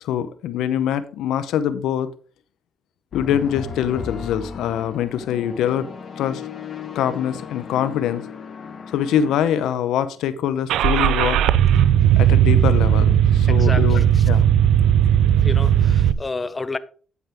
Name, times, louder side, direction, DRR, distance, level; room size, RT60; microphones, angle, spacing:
voice 1, 0.0-2.1 3.1-5.9 6.2-6.4 6.9-8.2 8.9-11.4 12.2-14.4, left 9 dB, 90° left, 0.7 m, -24 dB
sound 1, 3.1-9.4, left 6 dB, 55° left, 1.2 m, -35 dB
Car / Engine starting, 10.7-16.1, right 10 dB, 90° right, 0.4 m, -16 dB
voice 2, 13.5-14.0 15.4-16.8, left 3 dB, 25° left, 0.6 m, -30 dB
9.0 x 8.4 x 3.5 m
cardioid pair, 85°, 0 cm